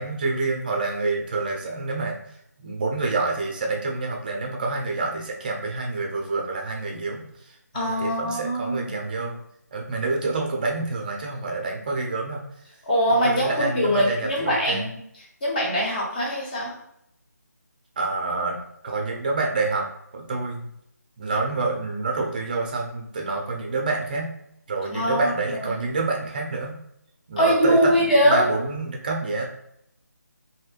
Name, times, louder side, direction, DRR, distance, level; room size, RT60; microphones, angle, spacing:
voice 1, 0.0-2.2 2.6-9.4 9.7-12.4 13.2-14.9 18.0-19.9 20.1-20.7 21.2-24.3 24.7-26.8 27.3-29.5, right 3 dB, 30° right, 1 dB, 0.5 m, -27 dB
voice 2, 7.7-8.8 12.9-14.9 15.4-16.7 24.9-25.7 27.4-28.4, equal, 30° left, -4 dB, 1.0 m, -22 dB
3.3 x 2.6 x 2.3 m, 0.76 s
figure-of-eight pair, 165°, 9 cm